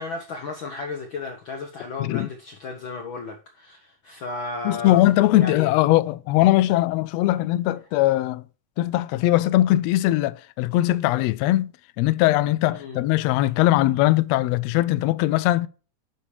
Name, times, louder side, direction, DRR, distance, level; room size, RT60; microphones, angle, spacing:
voice 1, 0.0-5.0 5.3-5.7 12.7-13.0, left 4 dB, 70° left, 1.2 m, -34 dB
voice 2, 2.0-2.3 4.6-8.4 8.8-11.7 12.0-15.7, left 16 dB, 85° left, 1.5 m, -20 dB
9.8 x 6.9 x 3.2 m
omnidirectional pair, 3.5 m